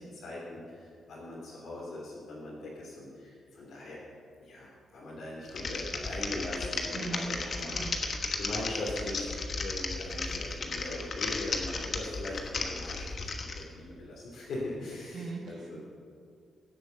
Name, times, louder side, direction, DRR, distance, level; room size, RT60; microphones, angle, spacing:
voice 1, 0.0-4.0 4.4-9.3 9.6-15.8, left 2 dB, 65° left, -7 dB, 3.4 m, -40 dB
Typing, 5.5-13.6, left 3 dB, 40° left, 1.2 m, -35 dB
voice 2, 6.9-7.2 7.7-8.0 15.1-15.8, right 3 dB, 50° right, 0 dB, 1.4 m, -39 dB
16.5 x 7.9 x 6.9 m, 2.3 s
wide cardioid pair, 165°, 0 cm